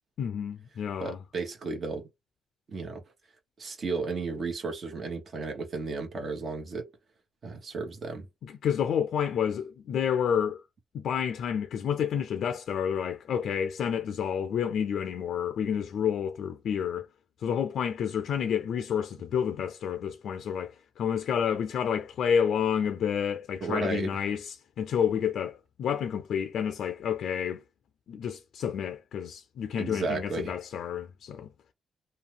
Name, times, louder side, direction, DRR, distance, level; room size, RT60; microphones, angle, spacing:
voice 1, 0.2-1.2 8.4-10.6 10.9-17.1 17.4-27.6 28.1-31.5, left 8 dB, 75° left, 0.3 m, -29 dB
voice 2, 1.0-2.1 2.7-3.0 3.6-6.9 7.4-8.3 23.6-24.1 29.8-30.5, right 3 dB, 55° right, 1.1 m, -33 dB
2.7 x 2.2 x 3.4 m
cardioid pair, 75°, 0 cm